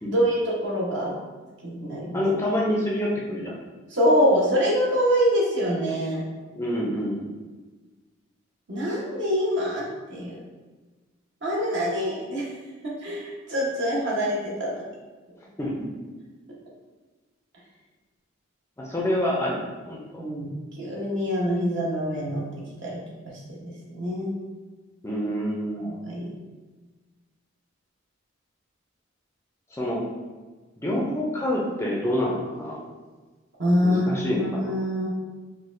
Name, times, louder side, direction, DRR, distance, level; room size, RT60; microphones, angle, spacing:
voice 1, 0.1-1.1 1.6-2.2 3.9-6.2 8.7-9.8 10.1-10.3 11.4-12.5 13.0-14.7 20.2-22.4 22.8-23.0 23.5-24.3 25.8-26.3 33.6-35.1, equal, 60° right, -5 dB, 0.9 m, -25 dB
voice 2, 2.1-3.5 6.5-7.2 15.6-15.7 18.8-19.6 19.9-20.2 25.0-25.8 29.8-30.0 30.8-32.8 33.8-34.7, left 1 dB, 15° left, -3 dB, 0.4 m, -27 dB
4.0 x 2.3 x 2.5 m, 1.3 s
head